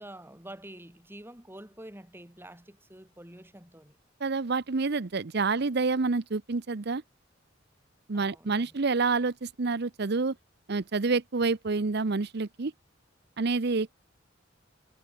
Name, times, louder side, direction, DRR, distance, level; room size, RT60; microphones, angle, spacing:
voice 1, 0.0-4.0 8.1-8.7, right 1 dB, 10° right, 3.9 m, -47 dB
voice 2, 4.2-7.0 8.1-10.3 10.7-12.7 13.4-13.9, right 4 dB, 55° right, 0.8 m, -28 dB
head